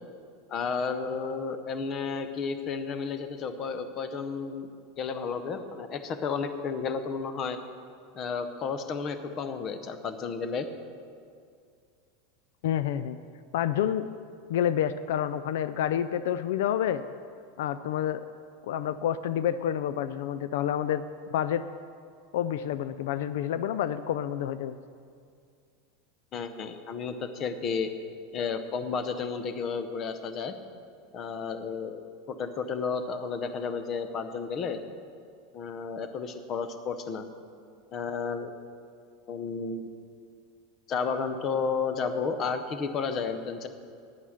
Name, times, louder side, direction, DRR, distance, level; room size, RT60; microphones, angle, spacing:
voice 1, 0.5-4.7 5.0-7.6 8.2-10.7 26.3-27.9 28.3-30.5 31.1-32.0 32.3-34.8 35.5-37.2 37.9-38.5 39.3-39.9 40.9-43.7, left 5 dB, 25° left, 10 dB, 0.6 m, -32 dB
voice 2, 12.6-13.2 13.5-14.1 14.5-17.0 17.6-18.2 18.7-21.0 21.3-21.6 22.3-24.8, left 10 dB, 70° left, 13 dB, 0.3 m, -28 dB
9.7 x 9.1 x 6.4 m, 2.3 s
supercardioid pair, 170°, 0 cm